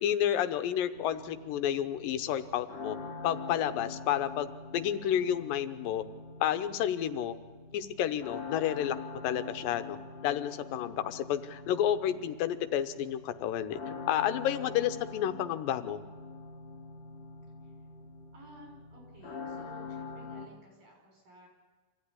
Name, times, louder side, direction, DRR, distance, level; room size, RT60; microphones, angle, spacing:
voice 1, 0.0-3.0 3.2-6.0 6.4-7.4 7.7-9.0 9.2-10.0 10.2-16.0, left 10 dB, 90° left, 11 dB, 2.7 m, -30 dB
sound 1, 0.9-20.5, left 4 dB, 55° left, 3.4 m, -44 dB
voice 2, 18.3-21.5, right 1 dB, 85° right, 2 dB, 7.6 m, -55 dB
25.5 x 15.5 x 9.9 m, 1.4 s
omnidirectional pair, 3.9 m